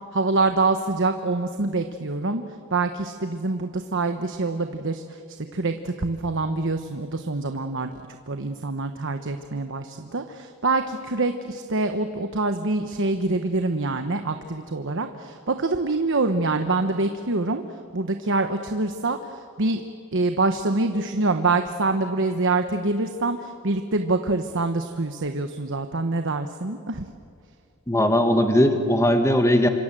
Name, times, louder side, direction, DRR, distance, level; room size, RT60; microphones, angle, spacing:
voice 1, 0.1-2.4 2.7-5.2 5.5-7.9 8.3-17.6 17.9-19.8 20.1-27.1, right 3 dB, 60° right, 7 dB, 1.1 m, -25 dB
voice 2, 27.9-29.7, left 1 dB, 15° left, 6 dB, 1.5 m, -19 dB
28.0 x 26.0 x 7.7 m, 2.3 s
head